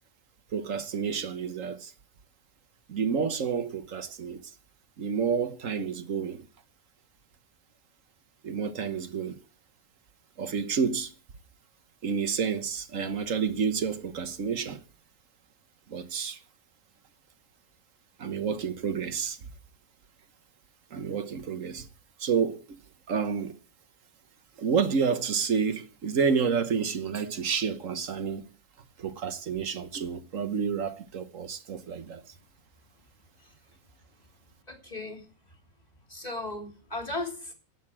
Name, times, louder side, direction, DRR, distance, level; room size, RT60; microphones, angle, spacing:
voice 1, 0.5-1.9 2.9-4.4 5.0-6.5 8.4-9.4 10.4-11.1 12.0-14.8 15.9-16.4 18.2-19.4 20.9-21.9 22.2-22.8 23.1-23.5 24.6-28.4 29.0-32.2, right 6 dB, 70° right, 1.5 m, -29 dB
voice 2, 34.7-35.3 36.1-37.5, left 2 dB, 30° left, 3.1 m, -36 dB
12.0 x 8.3 x 8.6 m
omnidirectional pair, 1.4 m